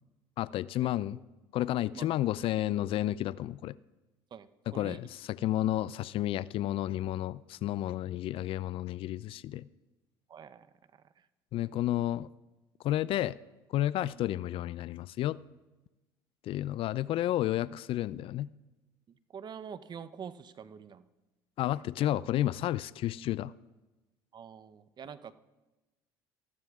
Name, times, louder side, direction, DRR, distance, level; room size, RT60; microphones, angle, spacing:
voice 1, 0.4-1.2 1.5-3.7 4.7-5.1 5.4-9.7 11.5-12.3 12.8-13.4 13.7-15.4 16.4-18.5 21.6-23.5, left 13 dB, 55° left, 0.3 m, -31 dB
voice 2, 4.3-5.0 10.3-10.7 10.9-11.3 14.1-14.3 19.1-21.1 22.0-22.1 24.3-25.3, right 7 dB, 40° right, 0.7 m, -46 dB
19.5 x 14.0 x 2.4 m
hypercardioid pair, 70°, 11 cm